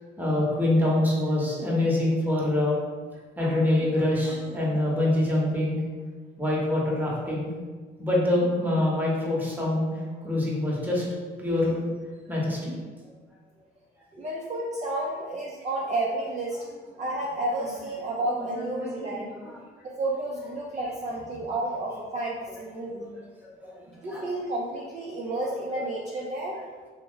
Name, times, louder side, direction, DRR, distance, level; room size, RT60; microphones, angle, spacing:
voice 1, 0.2-2.8 3.4-5.8 6.4-7.5 8.0-9.9 10.2-11.0 11.4-11.8 12.3-12.7 18.5-19.5 22.8-22.9 23.6-23.8 24.1-24.2 25.7-25.8, left 1 dB, 10° right, -5 dB, 0.9 m, -25 dB
voice 2, 14.2-16.7 17.0-19.3 19.8-23.1 24.0-26.6, right 2 dB, 35° right, -3 dB, 0.4 m, -31 dB
2.8 x 2.1 x 3.8 m, 1.4 s
cardioid pair, 90°, 20 cm